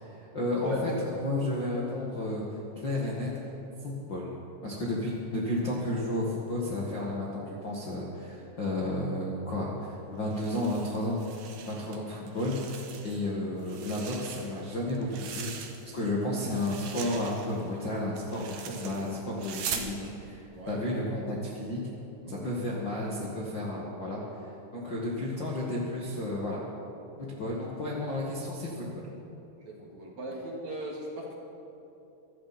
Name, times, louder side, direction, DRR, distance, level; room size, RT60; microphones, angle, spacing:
voice 1, 0.0-2.5 2.7-3.3 3.8-4.4 4.6-11.2 11.7-15.5 15.9-21.8 22.3-24.2 24.7-26.6 27.2-28.9, left 1 dB, 85° left, -4 dB, 1.0 m, -32 dB
sound 1, 10.3-12.0 12.3-13.3 13.6-16.1 16.4-19.9, right 7 dB, 90° right, 1.7 m, -41 dB
voice 2, 20.5-20.8 22.2-22.5 29.7-31.3, right 1 dB, 50° right, -2 dB, 2.8 m, -38 dB
24.0 x 14.0 x 4.3 m, 2.9 s
omnidirectional pair, 5.4 m